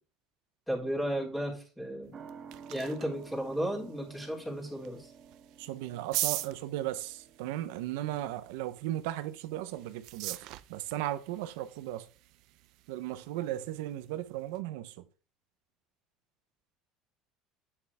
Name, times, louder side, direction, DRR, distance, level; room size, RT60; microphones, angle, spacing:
voice 1, 0.7-2.2 2.7-5.1, equal, 5° left, 3.7 m, -34 dB
sound 1, 2.0-14.6, right 17 dB, 65° right, 0.6 m, -43 dB
sound 2, 2.1-9.2 9.5-9.6, right 6 dB, 35° right, 1.8 m, -52 dB
voice 2, 5.6-10.4 10.7-12.1 12.9-15.0, right 14 dB, 85° right, 0.9 m, -36 dB
9.0 x 7.2 x 3.6 m
supercardioid pair, 120°, 0 cm